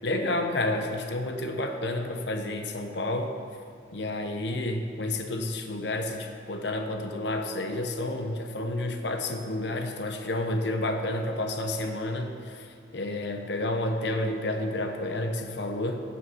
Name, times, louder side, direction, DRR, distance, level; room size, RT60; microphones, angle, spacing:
voice 1, 0.0-3.3 3.9-12.7 12.9-16.0, left 1 dB, 65° left, 5 dB, 0.9 m, -30 dB
16.0 x 5.7 x 5.7 m, 2.3 s
head